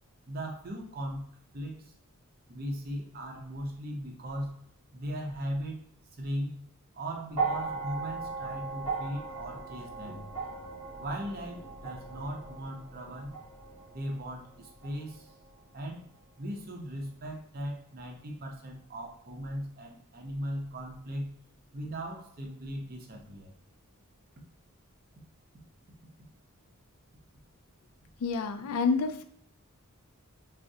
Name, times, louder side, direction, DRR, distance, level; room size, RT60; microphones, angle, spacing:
voice 1, 0.3-1.3 1.5-1.9 2.5-4.6 4.9-5.8 6.1-6.6 6.9-10.3 11.0-13.4 13.9-15.3 15.7-16.1 16.4-21.4 21.7-23.5, equal, 40° right, 1 dB, 0.6 m, -38 dB
sound 1, 7.3-15.6 16.7-16.8, right 4 dB, 25° right, 1.0 m, -38 dB
voice 2, 28.2-29.2, left 4 dB, 75° left, 8 dB, 0.3 m, -28 dB
3.5 x 2.0 x 2.6 m, 0.65 s
head